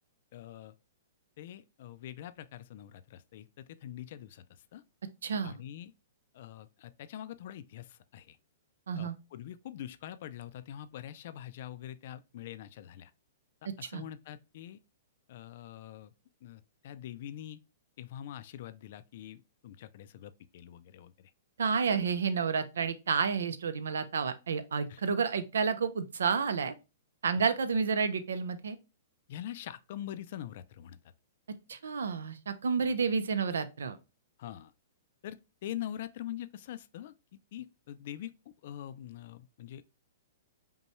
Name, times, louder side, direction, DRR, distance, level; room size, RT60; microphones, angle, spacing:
voice 1, 0.3-0.7 1.4-4.8 5.4-5.9 6.3-8.4 9.0-13.1 13.8-14.8 15.3-16.1 16.4-17.6 18.0-21.3 21.9-22.1 24.9-25.0 29.3-31.0 32.8-32.9 34.4-34.7 35.2-37.1 37.5-38.3 38.6-39.9, left 11 dB, 55° left, 0.4 m, -44 dB
voice 2, 5.2-5.5 8.9-9.1 13.8-14.0 21.6-26.7 27.2-28.8 31.7-34.0, right 5 dB, 90° right, 0.5 m, -30 dB
5.3 x 2.2 x 3.0 m
hypercardioid pair, 150°, 0 cm